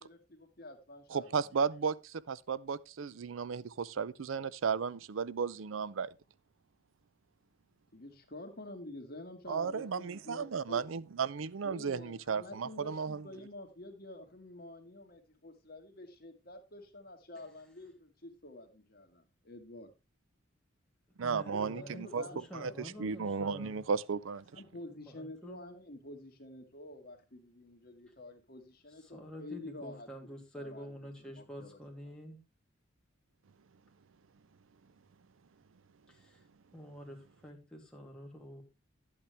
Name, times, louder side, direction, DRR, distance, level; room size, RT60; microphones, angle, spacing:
voice 1, 0.0-1.4 7.9-10.8 11.6-19.9 21.5-22.8 24.5-30.1 30.5-32.1, left 1 dB, 50° left, 2.1 m, -49 dB
voice 2, 1.1-6.1 9.5-13.2 21.2-22.3 22.5-24.6, right 5 dB, 80° right, 0.5 m, -34 dB
voice 3, 21.2-23.8 24.9-25.6 29.1-32.4 36.1-36.4 36.7-38.6, equal, 5° left, 2.6 m, -48 dB
12.0 x 8.6 x 3.3 m
head